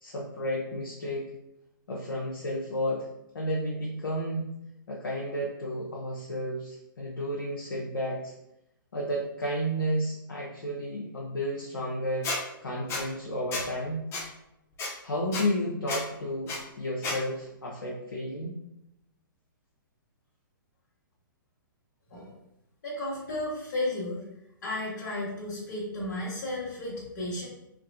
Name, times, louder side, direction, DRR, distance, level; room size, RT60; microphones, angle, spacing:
voice 1, 0.0-1.3 1.9-3.1 3.3-4.5 4.9-8.3 8.9-12.3 12.6-14.0 15.0-18.5, equal, 80° left, -3 dB, 0.7 m, -32 dB
Squeak, 12.2-12.4 12.9-13.0 13.5-13.7 14.1-14.2 14.8-14.9 15.3-15.4 15.9-16.0 16.5-16.6 17.0-17.2, left 3 dB, 20° left, 0.7 m, -31 dB
voice 2, 22.8-24.2 24.6-27.5, left 1 dB, 55° left, -5 dB, 1.0 m, -33 dB
3.5 x 3.0 x 2.6 m, 0.85 s
figure-of-eight pair, 120°, 12 cm